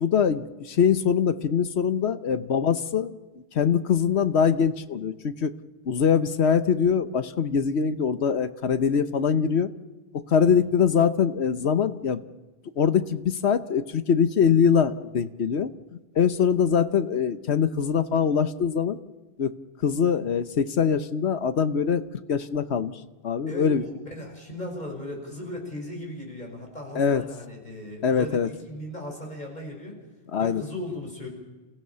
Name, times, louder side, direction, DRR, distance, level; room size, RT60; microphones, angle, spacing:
voice 1, 0.0-3.1 3.5-5.5 5.8-9.7 10.3-12.2 12.8-19.0 19.4-19.5 19.8-22.0 22.3-22.9 23.2-23.8 26.9-27.2 28.0-28.5 30.3-30.6, left 7 dB, 85° left, 12 dB, 1.3 m, -23 dB
voice 2, 23.5-30.0 30.4-31.3, left 1 dB, 40° left, 1 dB, 5.8 m, -37 dB
28.5 x 15.5 x 6.9 m, 1.2 s
omnidirectional pair, 1.1 m